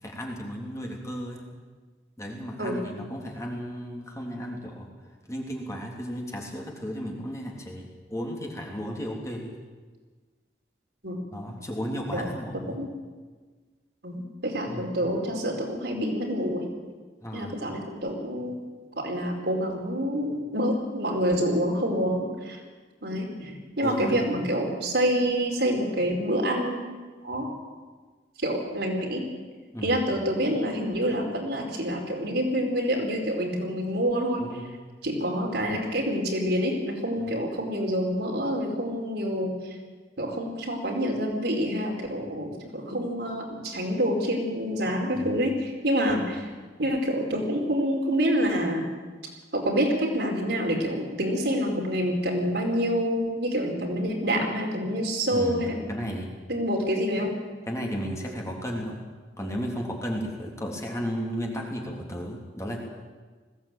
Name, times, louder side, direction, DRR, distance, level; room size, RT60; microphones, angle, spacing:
voice 1, 0.0-1.4 2.2-4.9 5.3-9.5 11.3-12.8 14.7-14.9 17.2-17.6 23.8-24.3 29.7-29.9 34.4-34.6 37.2-37.4 42.2-42.4 45.1-45.3 55.3-56.3 57.7-59.0 59.4-62.8, equal, 15° left, -1 dB, 3.5 m, -34 dB
voice 2, 12.5-12.9 14.0-16.6 17.3-18.6 19.0-22.6 23.0-26.8 27.2-27.6 28.4-29.2 29.8-34.4 35.0-39.8 40.2-46.5 46.8-48.9 49.5-55.8 56.5-57.3, equal, 70° right, 0 dB, 4.7 m, -27 dB
20.5 x 16.0 x 9.1 m, 1.4 s
head